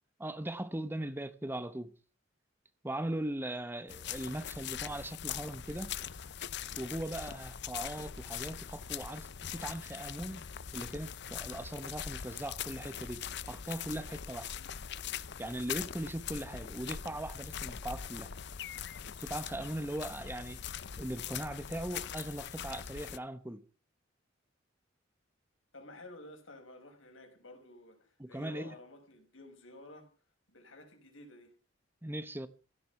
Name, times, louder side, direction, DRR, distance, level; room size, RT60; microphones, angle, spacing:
voice 1, 0.2-1.9 2.8-5.9 6.8-10.4 10.7-14.5 15.4-18.3 19.2-20.6 21.0-23.6 28.2-28.7 32.0-32.5, right 1 dB, 10° right, 1.0 m, -39 dB
sound 1, 3.9-23.2, left 8 dB, 60° left, 0.7 m, -42 dB
voice 2, 25.7-30.1 30.5-31.6, left 1 dB, 85° left, 5.6 m, -52 dB
16.5 x 13.0 x 5.9 m
head